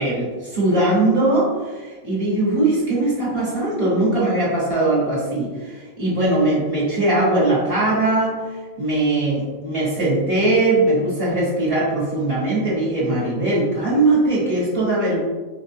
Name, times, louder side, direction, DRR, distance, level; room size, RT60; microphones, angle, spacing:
voice 1, 0.0-8.5 8.8-15.2, right 2 dB, 25° right, -10 dB, 1.2 m, -20 dB
4.1 x 2.2 x 2.6 m, 1.4 s
omnidirectional pair, 1.4 m